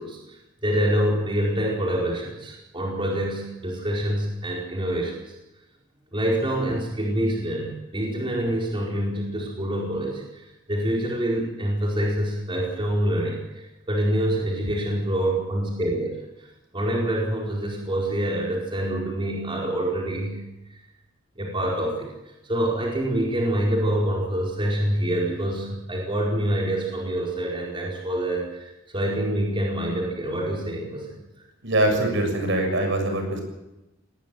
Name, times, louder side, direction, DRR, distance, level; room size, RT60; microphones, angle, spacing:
voice 1, 0.0-5.3 6.1-16.5 16.7-20.4 21.3-22.1 22.4-31.2 31.9-32.0, right 1 dB, 25° right, -3 dB, 4.7 m, -26 dB
voice 2, 31.6-33.4, right 1 dB, 65° right, 4 dB, 7.1 m, -23 dB
20.0 x 19.0 x 9.2 m, 0.98 s
head